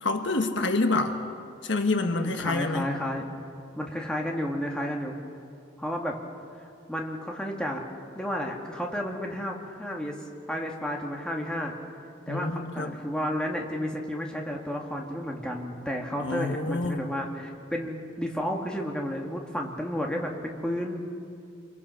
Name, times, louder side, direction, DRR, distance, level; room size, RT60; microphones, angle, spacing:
voice 1, 0.0-1.2 1.6-2.9 12.3-13.0 16.2-17.1, left 2 dB, 60° left, 5 dB, 1.3 m, -27 dB
voice 2, 2.1-3.2 3.8-5.1 5.8-6.2 6.6-7.8 8.1-10.2 10.5-11.7 12.3-21.1, equal, 5° left, 0 dB, 2.0 m, -32 dB
28.0 x 23.5 x 5.8 m, 2.5 s
head